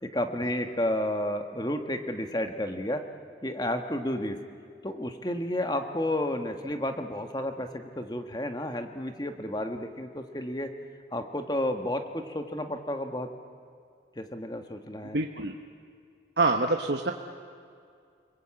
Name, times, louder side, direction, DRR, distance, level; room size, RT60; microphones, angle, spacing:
voice 1, 0.0-3.0 3.4-4.4 4.8-10.7 11.1-13.3 14.2-15.2, left 1 dB, 20° left, 6 dB, 1.5 m, -31 dB
voice 2, 15.1-15.6 16.4-17.1, right 3 dB, 70° right, 3 dB, 1.1 m, -25 dB
29.5 x 20.5 x 8.8 m, 2.3 s
head